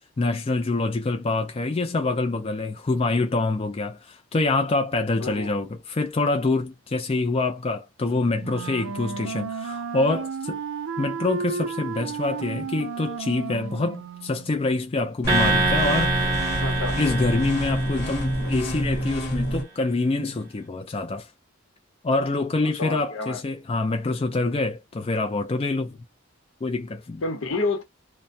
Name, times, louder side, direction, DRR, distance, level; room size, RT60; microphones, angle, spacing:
voice 1, 0.2-10.6 11.0-16.1 17.0-21.3 22.0-26.0 26.6-27.2, left 3 dB, 30° left, 0.4 m, -26 dB
voice 2, 5.2-5.5 16.6-16.9 22.6-23.4 27.2-27.8, left 3 dB, 80° left, 0.9 m, -29 dB
Wind instrument woodwind instrument, 8.4-14.6, right 5 dB, 75° right, 0.4 m, -33 dB
sound 1, 15.2-19.6, equal, 55° left, 1.0 m, -27 dB
sound 2, 15.3-18.7, right 3 dB, 20° right, 0.9 m, -26 dB
2.2 x 2.1 x 2.6 m
head